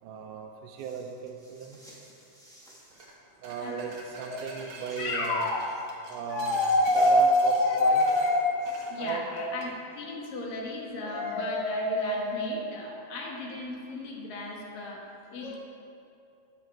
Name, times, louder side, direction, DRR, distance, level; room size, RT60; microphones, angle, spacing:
voice 1, 0.0-1.8 3.4-5.5 6.1-6.6 7.0-8.0 9.0-9.3, right 7 dB, 80° right, 2 dB, 2.1 m, -36 dB
sound 1, 0.8-3.2 3.5-5.1 5.6-9.0, equal, ahead, 1.0 m, -56 dB
sound 2, 2.9-3.1 3.4-9.7, right 3 dB, 60° right, 2.5 m, -47 dB
voice 2, 5.0-5.7 6.3-8.4 8.9-9.7 10.0-15.6, left 1 dB, 85° left, -2 dB, 3.4 m, -28 dB
14.0 x 8.8 x 4.6 m, 2.6 s
omnidirectional pair, 3.9 m